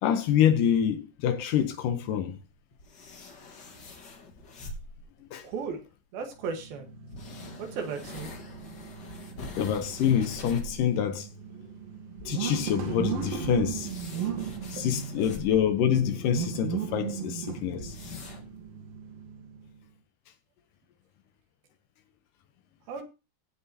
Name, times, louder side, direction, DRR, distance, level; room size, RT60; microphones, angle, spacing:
voice 1, 0.0-2.4 5.3-5.5 9.6-11.3 12.3-13.9 14.7-17.9, left 9 dB, 70° left, 2.4 m, -26 dB
sound 1, 2.4-5.2 6.2-6.3 7.1-10.9 11.2-11.3 11.6-11.7 12.1-16.4 16.8-16.9 17.1-17.2 17.7-18.6, left 2 dB, 50° left, 1.4 m, -44 dB
voice 2, 5.4-5.8 6.1-6.9 7.6-8.3 14.8-14.9 15.2-15.3 22.9-23.0, right 5 dB, 80° right, 3.3 m, -35 dB
sound 2, 6.4-19.8, right 7 dB, 55° right, 2.0 m, -37 dB
16.0 x 7.7 x 2.8 m
omnidirectional pair, 4.2 m